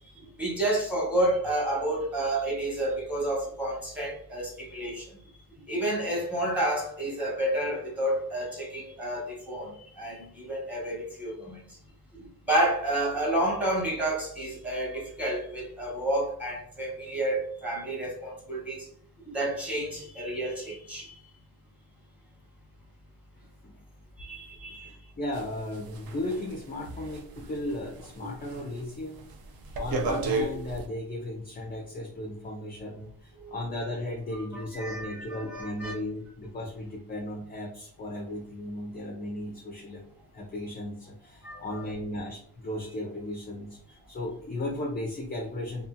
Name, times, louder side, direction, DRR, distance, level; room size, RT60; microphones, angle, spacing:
voice 1, 0.4-5.1 5.7-11.6 12.2-18.9 19.3-21.1 24.2-24.9 28.2-28.3 33.4-33.5 34.3-34.4 34.7-35.9 41.4-41.8, right 1 dB, 5° right, -3 dB, 1.0 m, -30 dB
voice 2, 24.8-29.2 29.7-40.0 40.3-43.8 44.1-45.9, left 1 dB, 20° left, 0 dB, 0.4 m, -35 dB
sound 1, 25.3-28.1 28.5-28.8 29.1-30.9, right 3 dB, 55° right, 0.5 m, -33 dB
2.6 x 2.4 x 2.5 m, 0.62 s
cardioid pair, 115°, 45 cm